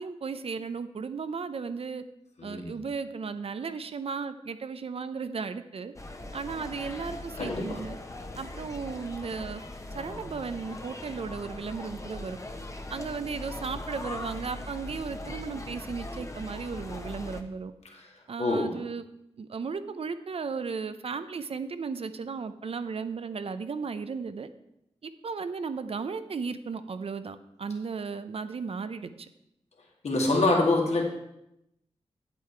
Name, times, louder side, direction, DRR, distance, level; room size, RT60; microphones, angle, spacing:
voice 1, 0.0-2.0 2.4-5.9 6.3-8.0 8.4-9.6 9.9-12.4 12.9-17.7 18.3-19.1 19.4-24.5 25.0-29.3, right 5 dB, 55° right, 11 dB, 0.6 m, -35 dB
voice 2, 2.4-2.7 7.4-7.8 17.9-18.1 18.4-18.8 30.0-31.0, left 2 dB, 70° left, 0 dB, 2.1 m, -26 dB
sound 1, 6.0-17.4, left 2 dB, 25° left, 1.1 m, -40 dB
8.5 x 8.3 x 4.5 m, 0.84 s
cardioid pair, 65°, 12 cm